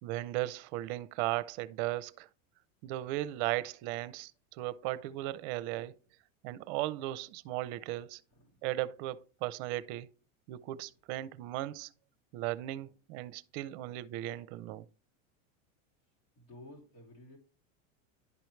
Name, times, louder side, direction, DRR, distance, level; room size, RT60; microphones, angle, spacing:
voice 1, 0.0-2.3 2.8-5.9 6.4-8.2 8.6-10.1 10.5-11.9 12.3-14.8, right 15 dB, 55° right, 0.6 m, -36 dB
voice 2, 16.3-17.4, left 1 dB, 85° left, 3.1 m, -53 dB
11.0 x 4.5 x 3.2 m
supercardioid pair, 140°, 40 cm